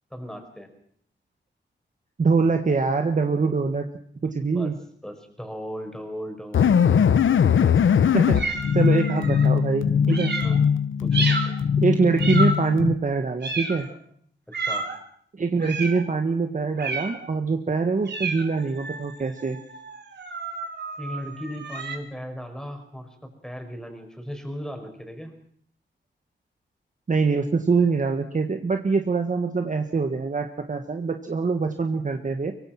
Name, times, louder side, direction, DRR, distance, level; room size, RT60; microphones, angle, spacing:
voice 1, 0.1-0.7 4.4-4.7 5.0-7.7 9.1-9.3 10.4-10.6 11.0-11.4 14.6-14.9 21.0-25.3, equal, 5° left, 5 dB, 5.5 m, -37 dB
voice 2, 2.2-3.9 4.2-4.7 8.1-10.3 11.8-13.9 15.4-19.6 27.1-32.5, right 4 dB, 40° right, 6 dB, 1.6 m, -24 dB
sound 1, 6.5-12.9, left 7 dB, 90° left, 0.9 m, -20 dB
sound 2, 8.3-9.5 10.1-10.6 11.1-11.6 12.2-12.8 13.4-14.0 14.5-15.0 15.6-16.1 16.8-17.3 18.1-22.0, right 3 dB, 60° right, 3.6 m, -31 dB
24.0 x 24.0 x 6.0 m, 0.62 s
wide cardioid pair, 140°, 20 cm